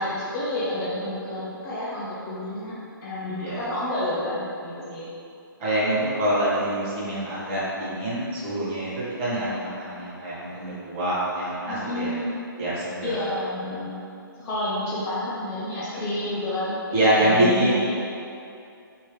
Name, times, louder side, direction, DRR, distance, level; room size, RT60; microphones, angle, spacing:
voice 1, 0.0-5.1 11.7-12.4 13.0-14.0 14.4-18.0, left 1 dB, 20° left, -9 dB, 0.5 m, -30 dB
voice 2, 5.6-12.1 12.6-13.1 13.7-13.8 16.9-17.7, right 1 dB, 30° right, -10 dB, 1.1 m, -25 dB
3.1 x 2.7 x 3.1 m, 2.6 s
hypercardioid pair, 140°, 12 cm